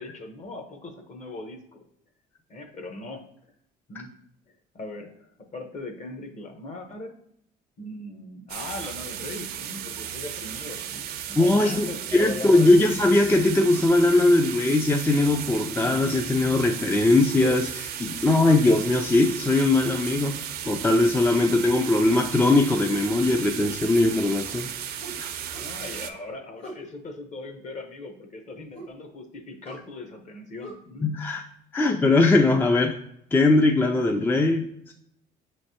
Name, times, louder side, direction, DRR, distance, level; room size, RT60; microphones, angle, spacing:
voice 1, 0.0-1.8 2.5-3.2 3.9-4.1 4.5-7.1 7.8-13.0 25.6-31.1, left 2 dB, 45° left, 5 dB, 0.9 m, -39 dB
sound 1, 8.5-26.1, right 9 dB, 65° right, 0.5 m, -35 dB
voice 2, 11.4-25.3 31.0-31.4 31.7-33.0 33.3-34.9, left 2 dB, 10° left, 4 dB, 0.3 m, -21 dB
sound 2, 13.7-14.0 15.6-16.3 17.4-17.7 19.8-20.1 22.1-22.4 25.0-25.7 26.6-26.9 28.7-29.0 29.6-29.9 30.6-30.7, right 1 dB, 80° left, 1.4 m, -41 dB
6.0 x 3.2 x 2.8 m, 0.73 s
cardioid pair, 110°, 17 cm